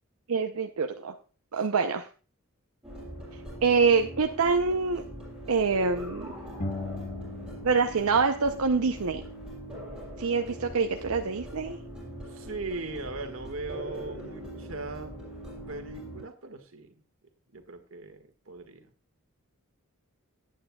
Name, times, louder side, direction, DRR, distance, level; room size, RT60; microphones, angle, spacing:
voice 1, 0.3-1.1 1.5-2.1 3.6-5.0 5.5-6.3 7.6-9.2 10.2-11.8, right 5 dB, 85° right, 5 dB, 0.7 m, -25 dB
sound 1, 2.8-16.2, right 1 dB, 5° right, 6.9 m, -42 dB
sound 2, 6.6-8.1 8.4-10.1, left 3 dB, 40° left, 1.3 m, -40 dB
voice 2, 12.3-15.2 15.7-16.9 17.5-18.9, right 3 dB, 65° right, 6 dB, 1.8 m, -39 dB
18.0 x 9.4 x 2.4 m, 0.35 s
head